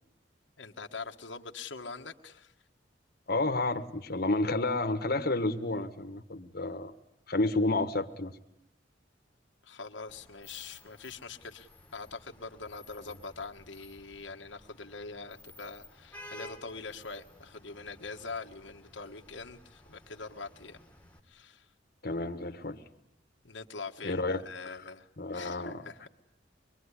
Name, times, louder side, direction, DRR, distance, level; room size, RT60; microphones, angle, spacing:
voice 1, 0.6-2.5 9.6-20.8 21.2-21.7 23.4-26.1, left 4 dB, 85° left, 1.5 m, -43 dB
voice 2, 3.3-6.9 7.3-8.3 22.0-22.8 24.0-24.4 25.2-25.8, left 2 dB, 55° left, 1.5 m, -30 dB
Vehicle horn car horn honking / Traffic noise roadway noise, 10.1-21.2, left 1 dB, 10° left, 2.2 m, -54 dB
24.5 x 23.0 x 9.9 m
head